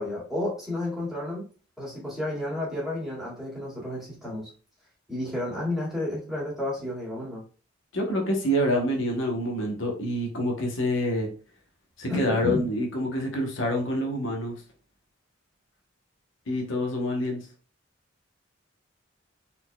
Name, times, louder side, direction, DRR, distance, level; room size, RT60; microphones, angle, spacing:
voice 1, 0.0-1.5 1.8-4.5 5.1-7.4 12.1-12.6, left 1 dB, ahead, -7 dB, 2.1 m, -31 dB
voice 2, 7.9-11.3 12.0-14.6 16.5-17.5, equal, 70° left, 1 dB, 1.0 m, -27 dB
4.2 x 4.2 x 2.3 m, 0.38 s
head